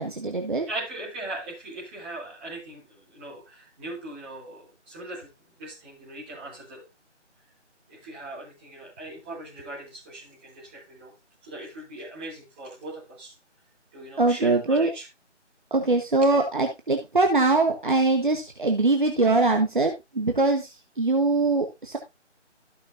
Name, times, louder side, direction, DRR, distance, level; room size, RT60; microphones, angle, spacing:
voice 1, 0.0-0.7 14.2-14.9 15.7-22.0, right 3 dB, 45° right, 4 dB, 1.3 m, -22 dB
voice 2, 0.7-6.8 7.9-11.1 11.4-13.3 13.9-15.0, right 2 dB, 10° right, -7 dB, 3.2 m, -39 dB
15.0 x 6.2 x 2.7 m, 0.23 s
figure-of-eight pair, 170°, 36 cm